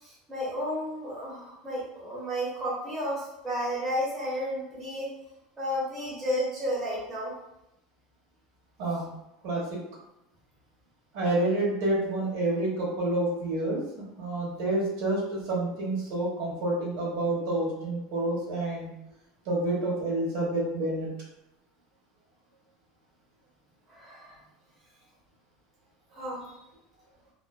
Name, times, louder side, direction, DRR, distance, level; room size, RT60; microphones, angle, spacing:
voice 1, 0.0-5.1 5.6-7.3 23.9-24.4 26.1-26.6, equal, 10° right, -7 dB, 0.7 m, -32 dB
voice 2, 11.1-13.8 14.2-18.9 19.4-21.1, right 2 dB, 55° right, -3 dB, 0.8 m, -28 dB
2.4 x 2.3 x 2.3 m, 0.89 s
supercardioid pair, 175°, 0 cm